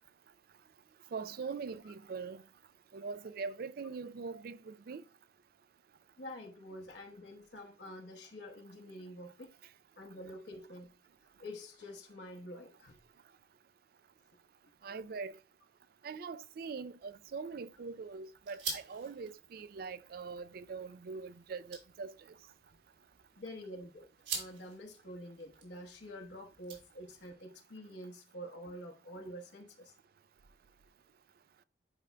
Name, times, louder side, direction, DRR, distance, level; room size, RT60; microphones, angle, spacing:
voice 1, 1.1-2.4 2.9-5.0 14.8-15.4 16.0-22.1, right 5 dB, 55° right, 0.4 m, -42 dB
voice 2, 6.2-9.5 10.0-10.9 11.4-13.0 23.4-29.9, equal, 75° left, 1.1 m, -47 dB
sound 1, 17.0-27.3, right 5 dB, 80° right, 3.1 m, -48 dB
11.0 x 5.1 x 2.2 m
head